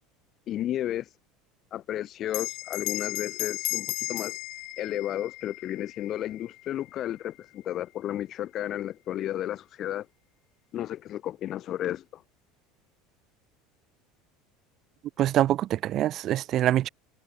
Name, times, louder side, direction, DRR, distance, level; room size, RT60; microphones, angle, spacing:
voice 1, 0.5-1.1 1.7-4.4 4.8-10.1 10.7-12.2, left 12 dB, 50° left, 3.3 m, -33 dB
Bell, 2.3-7.2, left 22 dB, 65° left, 3.2 m, -35 dB
voice 2, 15.2-16.9, right 13 dB, 50° right, 0.9 m, -24 dB
supercardioid pair, 95°, 0 cm